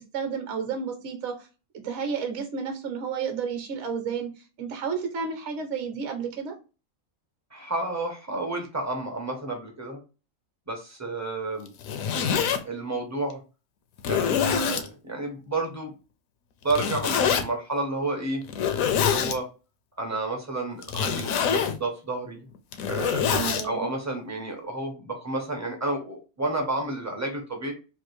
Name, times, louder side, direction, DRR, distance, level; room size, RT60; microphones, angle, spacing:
voice 1, 0.1-1.5 1.7-6.5 14.3-14.7 23.2-23.9, right 5 dB, 60° right, 5 dB, 1.0 m, -31 dB
voice 2, 7.5-10.0 10.7-11.7 12.6-13.4 14.1-15.9 16.6-18.4 19.0-19.5 20.0-22.4 22.9-23.4 23.6-27.7, right 2 dB, 25° right, 2 dB, 0.4 m, -31 dB
Zipper (clothing), 11.7-12.6 13.3-13.4 14.0-14.9 16.7-17.4 18.5-19.4 20.8-21.8 22.5-23.6, left 7 dB, 75° left, 1.0 m, -25 dB
3.3 x 2.4 x 3.0 m, 0.32 s
omnidirectional pair, 1.5 m